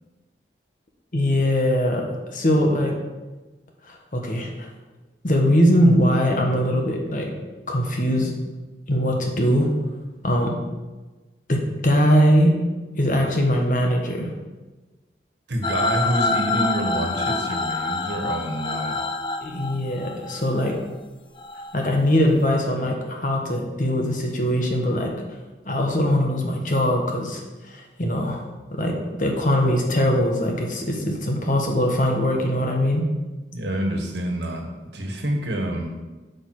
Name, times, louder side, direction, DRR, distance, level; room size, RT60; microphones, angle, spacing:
voice 1, 1.1-2.0 2.3-2.9 3.9-4.7 5.2-7.3 7.7-8.3 8.9-9.7 10.2-10.6 11.5-12.5 13.0-14.3 19.4-20.8 21.7-25.1 25.7-28.4 28.7-33.0, equal, 45° left, 1 dB, 1.3 m, -21 dB
voice 2, 15.5-19.0 33.5-36.0, right 1 dB, 85° right, 3 dB, 1.4 m, -27 dB
sound 1, 15.6-20.8 21.4-21.7, left 3 dB, 25° left, 0.4 m, -26 dB
8.4 x 5.3 x 4.8 m, 1.2 s
head